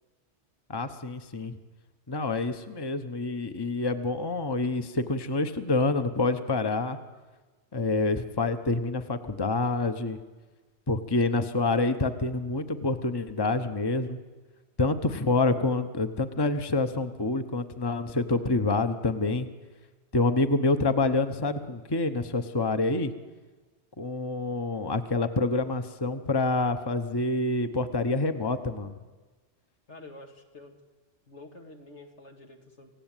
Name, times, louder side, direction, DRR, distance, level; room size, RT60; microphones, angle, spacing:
voice 1, 0.7-1.6 2.1-7.0 7.7-10.2 10.9-14.2 14.8-19.5 20.1-23.1 24.0-29.0, left 3 dB, 20° left, 9 dB, 1.1 m, -27 dB
voice 2, 29.9-30.8 31.3-32.9, left 2 dB, 75° left, 3 dB, 2.7 m, -48 dB
27.5 x 16.5 x 9.2 m, 1.3 s
omnidirectional pair, 1.2 m